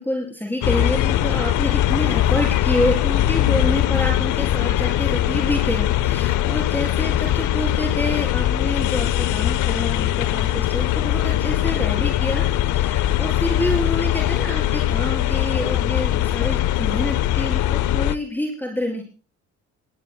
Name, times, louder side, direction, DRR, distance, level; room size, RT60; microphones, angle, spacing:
voice 1, 0.0-19.0, left 1 dB, 5° left, 1 dB, 3.8 m, -27 dB
sound 1, 0.6-18.1, left 13 dB, 80° left, 0.7 m, -21 dB
25.5 x 18.0 x 2.2 m, 0.37 s
cardioid pair, 90°, 30 cm